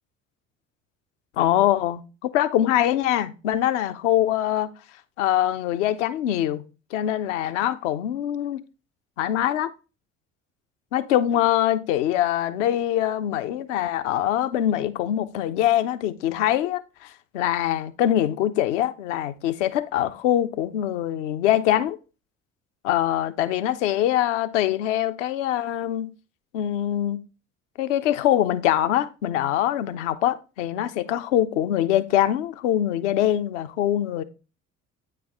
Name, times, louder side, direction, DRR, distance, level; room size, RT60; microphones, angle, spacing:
voice 1, 1.4-4.7 5.2-6.6 6.9-8.6 9.2-9.7 10.9-22.0 22.8-26.1 26.5-27.2 27.8-34.2, left 12 dB, 65° left, 0.7 m, -23 dB
8.8 x 4.7 x 3.5 m
figure-of-eight pair, 55°, 40 cm